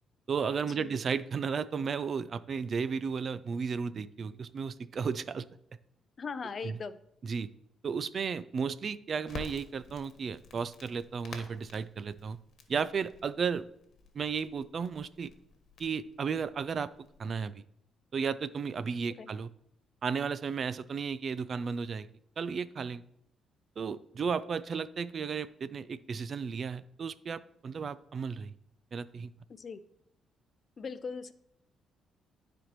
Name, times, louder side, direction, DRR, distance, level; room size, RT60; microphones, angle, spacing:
voice 1, 0.3-5.5 6.6-6.8 7.2-7.5 7.8-12.4 12.7-13.7 14.1-15.3 15.8-16.9 17.2-17.6 18.1-19.5 20.0-22.1 22.4-23.0 23.8-28.5 28.9-29.3, right 6 dB, 50° right, 16 dB, 0.4 m, -34 dB
voice 2, 6.2-7.0 19.2-19.3 29.5-29.8 30.8-31.3, left 5 dB, 45° left, 14 dB, 0.5 m, -39 dB
Crackle, 9.2-17.2, left 4 dB, 60° left, 1.2 m, -51 dB
13.0 x 4.3 x 3.0 m, 0.74 s
cardioid pair, 90°, 0 cm